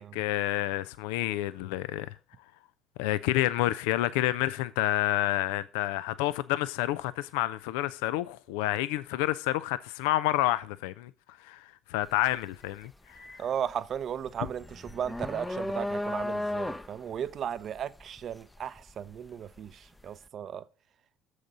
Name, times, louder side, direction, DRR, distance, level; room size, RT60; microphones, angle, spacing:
voice 1, 0.0-2.1 3.0-11.1 11.4-12.9 13.3-13.4, left 15 dB, 75° left, 0.3 m, -29 dB
sound 1, 12.0-12.3 12.7-19.7, left 1 dB, 10° left, 0.6 m, -35 dB
voice 2, 13.4-20.7, right 8 dB, 50° right, 0.6 m, -36 dB
7.1 x 6.4 x 5.3 m
hypercardioid pair, 60°, 0 cm